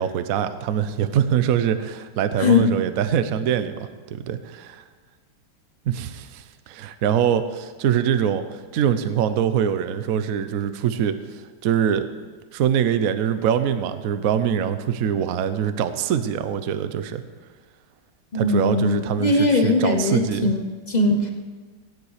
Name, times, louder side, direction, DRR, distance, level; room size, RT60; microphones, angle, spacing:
voice 1, 0.0-4.8 5.9-8.4 8.7-11.2 11.6-12.1 12.5-17.2 18.3-20.5, right 9 dB, 60° right, 11 dB, 0.9 m, -23 dB
voice 2, 2.4-2.7 18.3-21.3, left 3 dB, 40° left, 3 dB, 0.6 m, -20 dB
16.5 x 9.8 x 4.9 m, 1.5 s
omnidirectional pair, 2.2 m